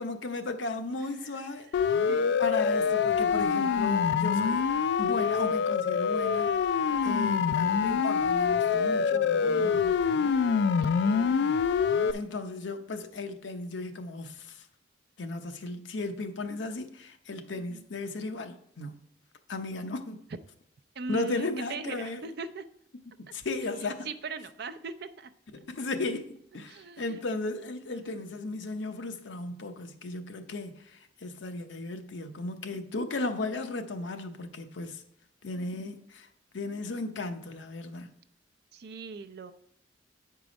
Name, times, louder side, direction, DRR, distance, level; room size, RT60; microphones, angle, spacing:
voice 1, 0.0-2.0 2.4-4.6 5.0-6.5 7.0-9.9 10.7-10.9 12.1-14.6 15.2-19.0 19.5-20.2 21.1-22.2 23.2-24.1 25.5-35.0 35.4-36.3 36.5-38.1, left 2 dB, 90° left, 0.7 m, -35 dB
voice 2, 1.0-1.7 2.0-2.4 7.0-7.3 8.8-10.0 10.8-11.4 17.5-17.8 21.0-22.6 24.0-25.3 26.7-27.2 27.9-28.1 38.7-39.5, right 4 dB, 60° right, 0.5 m, -41 dB
Siren, 1.7-12.1, left 6 dB, 65° left, 0.3 m, -25 dB
8.6 x 4.7 x 5.1 m
head